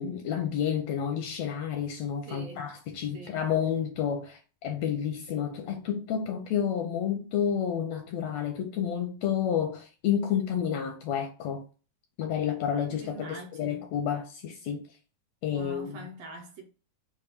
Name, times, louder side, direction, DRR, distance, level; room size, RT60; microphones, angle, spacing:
voice 1, 0.0-11.6 12.2-14.9 15.4-16.1, left 8 dB, 80° left, 1.6 m, -30 dB
voice 2, 2.3-2.7 3.1-3.5 12.9-13.9 15.5-16.6, right 2 dB, 70° right, 1.7 m, -44 dB
6.1 x 2.4 x 3.4 m
omnidirectional pair, 3.5 m